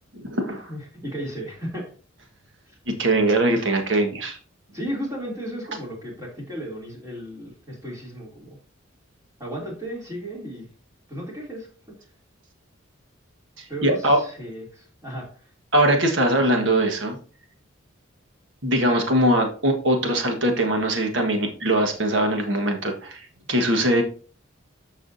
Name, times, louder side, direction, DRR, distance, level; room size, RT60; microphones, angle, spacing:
voice 1, 0.1-0.7 2.9-4.4 13.6-14.2 15.7-17.2 18.6-24.0, right 1 dB, 60° right, 4 dB, 1.5 m, -21 dB
voice 2, 0.7-1.9 2.7-2.8 4.7-8.6 9.4-10.7 11.1-11.7 13.7-15.5, equal, 15° right, -3 dB, 2.9 m, -34 dB
13.5 x 4.9 x 2.7 m, 0.40 s
head